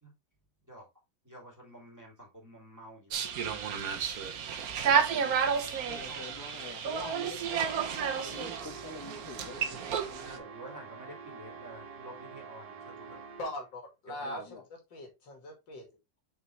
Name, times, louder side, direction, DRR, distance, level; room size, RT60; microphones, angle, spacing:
voice 1, 1.2-3.2 5.9-6.3 10.2-13.2 14.1-14.4, right 1 dB, 10° right, -3 dB, 2.6 m, -49 dB
sound 1, 3.1-10.4, right 7 dB, 60° right, 1.3 m, -31 dB
voice 2, 4.9-5.3 5.9-10.5 14.2-14.6, left 2 dB, 15° left, 1 dB, 1.9 m, -46 dB
sound 2, 7.6-13.7, right 5 dB, 80° right, 1.9 m, -47 dB
voice 3, 13.4-14.6 14.9-16.0, left 1 dB, 90° left, 3 dB, 2.6 m, -41 dB
6.1 x 5.2 x 3.1 m, 0.23 s
omnidirectional pair, 1.9 m